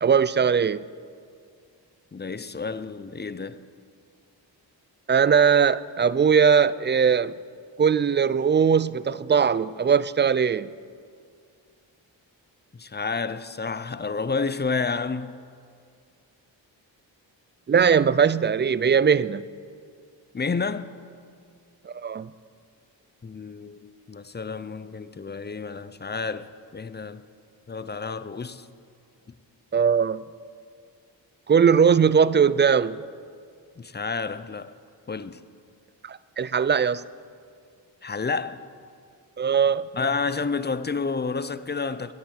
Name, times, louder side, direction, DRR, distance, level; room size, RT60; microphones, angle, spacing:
voice 1, 0.0-0.8 5.1-7.3 7.8-10.7 17.7-19.4 21.9-22.3 29.7-30.2 31.5-33.0 36.0-37.0 39.4-39.9, right 6 dB, 25° right, 0.4 m, -20 dB
voice 2, 2.1-3.6 12.7-15.4 20.3-20.9 23.2-27.2 27.7-28.7 33.8-34.7 35.1-35.4 38.0-38.6 39.9-42.1, left 4 dB, 25° left, 0.6 m, -30 dB
20.5 x 9.2 x 4.5 m
cardioid pair, 40°, 45 cm